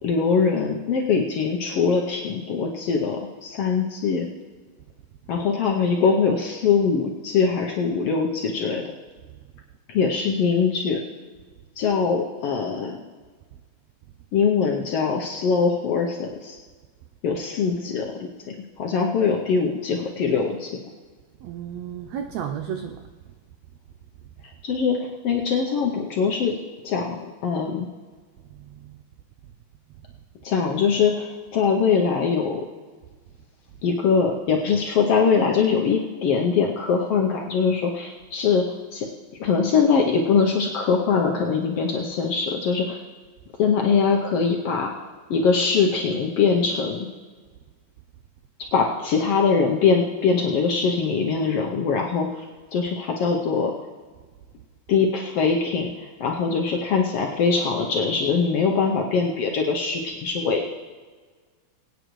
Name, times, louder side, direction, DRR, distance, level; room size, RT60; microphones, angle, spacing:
voice 1, 0.0-4.3 5.3-8.9 9.9-11.0 11.8-13.0 14.3-16.6 17.2-20.8 24.6-26.6 26.8-27.9 30.4-32.6 33.8-39.1 39.4-43.0 43.6-47.1 48.7-52.4 52.7-53.7 54.9-60.7, left 5 dB, 80° left, 1 dB, 1.3 m, -22 dB
voice 2, 21.4-23.0 28.6-28.9, right 8 dB, 85° right, 6 dB, 1.5 m, -33 dB
23.0 x 9.1 x 3.1 m, 1.5 s
omnidirectional pair, 3.7 m